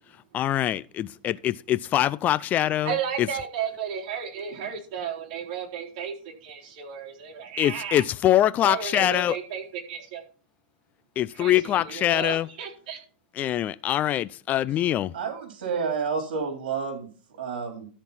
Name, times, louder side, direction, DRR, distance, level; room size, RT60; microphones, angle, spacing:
voice 1, 0.3-3.3 7.6-9.4 11.2-12.5 13.4-15.1, left 12 dB, 30° left, 0.5 m, -24 dB
voice 2, 2.8-6.1 6.4-8.0 8.6-10.2 11.3-13.0, right 7 dB, 50° right, 4.1 m, -33 dB
voice 3, 15.1-17.1 17.4-17.9, right 5 dB, 70° right, 3.5 m, -29 dB
13.5 x 4.5 x 5.7 m
hypercardioid pair, 120°, 5 cm